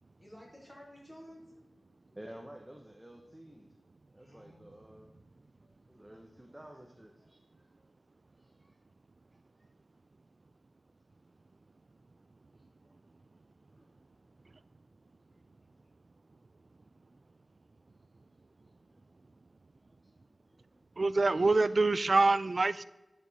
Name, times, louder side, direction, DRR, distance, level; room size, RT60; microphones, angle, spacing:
voice 1, 0.0-2.2 4.1-6.1 6.5-6.7 7.2-7.9 8.4-8.8 12.5-12.9 13.3-13.4 13.6-14.0 15.2-15.9 17.9-19.1 19.8-20.8, equal, 20° left, 3.1 m, -59 dB
voice 2, 2.1-3.7 4.1-5.1 5.9-7.7 8.3-8.8 9.6-9.7 21.2-21.7, right 1 dB, 15° right, 0.9 m, -52 dB
voice 3, 21.0-22.8, right 3 dB, 55° right, 0.3 m, -25 dB
10.5 x 5.2 x 4.1 m
wide cardioid pair, 65°, 0 cm